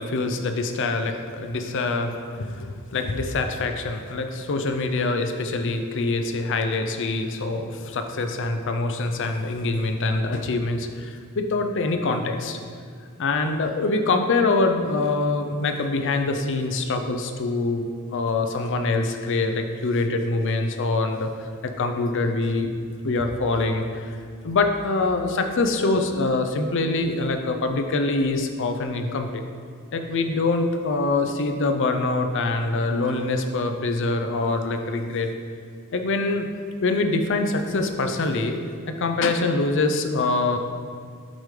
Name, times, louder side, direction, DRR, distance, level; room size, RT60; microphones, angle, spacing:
voice 1, 0.0-12.6 13.2-17.9 18.1-22.7 23.0-24.2 24.4-29.4 29.9-35.3 35.9-36.5 36.8-38.6 39.0-40.6, left 3 dB, 60° left, 6 dB, 0.5 m, -24 dB
7.9 x 4.9 x 3.2 m, 2.2 s
head